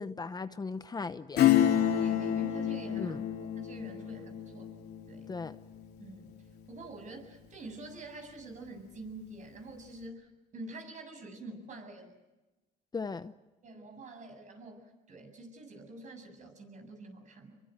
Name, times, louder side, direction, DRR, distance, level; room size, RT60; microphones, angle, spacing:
voice 1, 0.0-1.6 3.0-3.2 5.3-5.6 12.9-13.3, left 4 dB, 25° left, 12 dB, 0.8 m, -37 dB
Acoustic guitar / Strum, 1.4-7.6 7.9-8.0, left 10 dB, 70° left, 3.2 m, -30 dB
voice 2, 1.7-3.2 3.5-4.7 5.1-5.3 6.0-6.3 6.7-12.1 13.6-17.6, right 2 dB, 45° right, 5 dB, 7.4 m, -47 dB
28.5 x 23.0 x 8.1 m, 1.1 s
cardioid pair, 110°, 17 cm